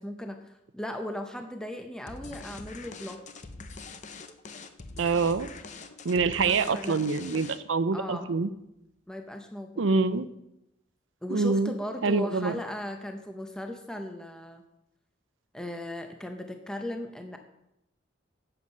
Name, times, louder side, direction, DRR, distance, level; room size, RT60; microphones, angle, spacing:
voice 1, 0.0-3.2 6.3-7.0 7.9-8.3 9.1-9.9 11.2-14.6 15.5-17.4, left 1 dB, 5° left, 5 dB, 0.7 m, -37 dB
sound 1, 2.1-7.8, left 3 dB, 40° left, 0.7 m, -44 dB
voice 2, 5.0-5.5 6.0-8.5 9.8-10.3 11.3-11.7 12.0-12.5, right 4 dB, 90° right, 14 dB, 0.6 m, -25 dB
9.6 x 7.9 x 5.5 m, 0.86 s
head